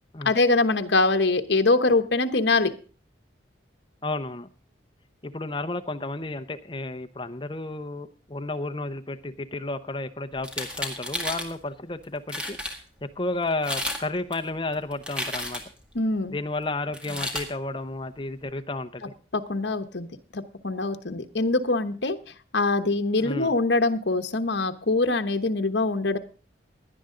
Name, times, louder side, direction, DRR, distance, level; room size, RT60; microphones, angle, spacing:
voice 1, 0.2-2.7 15.9-16.4 19.3-20.1 20.3-22.2 22.5-26.2, left 3 dB, 65° left, 7 dB, 1.1 m, -23 dB
voice 2, 4.0-4.5 5.2-12.6 13.0-15.6 16.3-19.1 23.2-23.5, left 2 dB, 25° left, 7 dB, 0.8 m, -32 dB
sound 1, 10.4-11.5 12.0-12.1 12.3-12.8 13.5-14.0 14.3-15.8 16.9-17.5, left 1 dB, 5° right, 1.9 m, -32 dB
17.5 x 11.0 x 3.8 m, 0.38 s
head